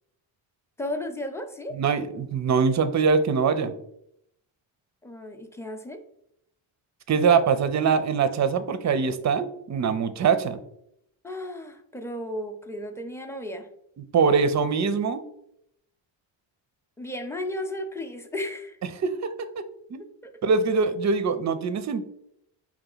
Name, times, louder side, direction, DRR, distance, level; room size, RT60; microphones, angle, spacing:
voice 1, 0.8-1.8 5.0-6.0 11.2-13.7 17.0-18.8 20.2-20.3, left 1 dB, 5° left, 5 dB, 0.6 m, -34 dB
voice 2, 1.7-3.7 7.1-10.6 14.1-15.2 19.0-20.0 20.4-22.1, right 5 dB, 35° right, 12 dB, 0.5 m, -23 dB
4.7 x 2.9 x 3.9 m, 0.75 s
cardioid pair, 80°, 48 cm